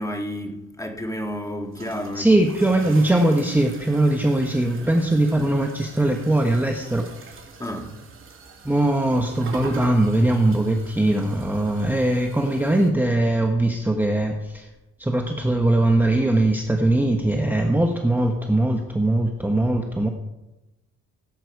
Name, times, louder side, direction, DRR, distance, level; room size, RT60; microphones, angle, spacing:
voice 1, 0.0-2.3 2.7-2.8 7.6-8.0, equal, 10° left, 1.8 m, -31 dB
sound 1, 1.2-12.9, right 4 dB, 45° right, 2.7 m, -43 dB
voice 2, 2.1-7.3 8.6-14.7 15.0-20.1, right 1 dB, 5° right, 1.1 m, -21 dB
17.0 x 7.9 x 4.7 m
cardioid pair, 90°, 30 cm